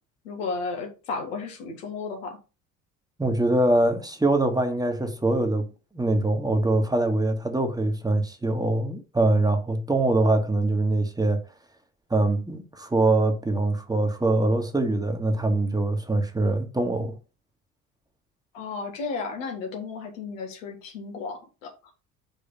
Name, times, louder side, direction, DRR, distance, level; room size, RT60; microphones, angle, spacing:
voice 1, 0.2-2.4 18.5-21.7, left 4 dB, 80° left, 1.8 m, -33 dB
voice 2, 3.2-5.6 5.9-11.4 12.1-17.1, right 2 dB, 10° right, 1.5 m, -23 dB
5.4 x 3.7 x 5.7 m
hypercardioid pair, 60°, 38 cm